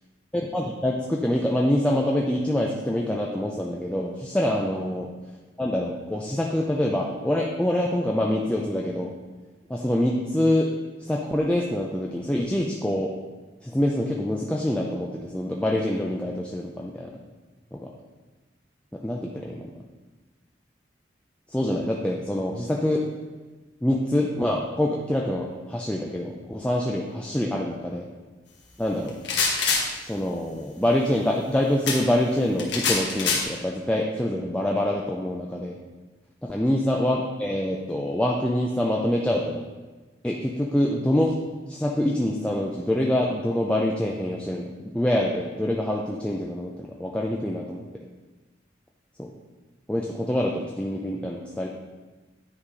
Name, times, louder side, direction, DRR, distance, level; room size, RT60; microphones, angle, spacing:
voice 1, 0.3-5.1 5.6-9.1 9.7-10.7 11.1-13.1 13.6-17.1 17.7-17.9 19.0-19.7 21.5-23.0 23.8-28.1 28.8-29.1 30.0-35.8 36.4-39.6 40.2-41.4 41.7-47.8 49.2-49.3 49.9-51.7, left 1 dB, 5° left, -2 dB, 0.5 m, -25 dB
sound 1, 29.1-29.9 31.9-32.0 32.6-33.4, left 5 dB, 75° left, 1.5 m, -24 dB
9.8 x 4.2 x 4.9 m, 1.3 s
head